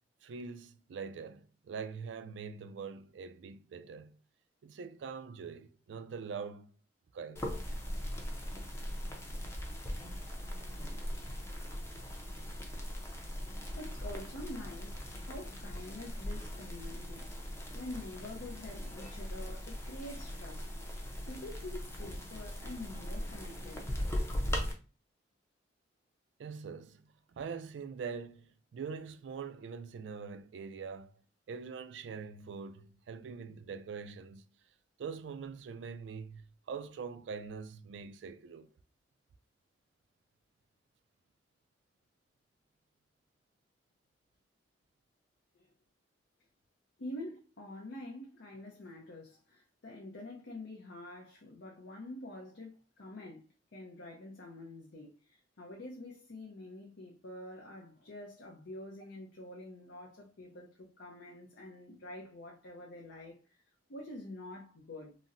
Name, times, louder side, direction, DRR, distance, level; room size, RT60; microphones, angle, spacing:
voice 1, 0.2-4.2 4.6-6.7 7.1-7.4 26.4-31.2 31.5-34.5 35.0-38.7, right 5 dB, 80° right, 0.3 m, -43 dB
sound 1, 7.4-24.7, equal, 15° left, 0.5 m, -39 dB
voice 2, 13.8-20.7 21.3-23.9 45.5-45.7 47.0-53.5 53.7-63.6 63.9-65.2, left 1 dB, 75° left, 0.6 m, -47 dB
3.9 x 2.0 x 2.5 m
head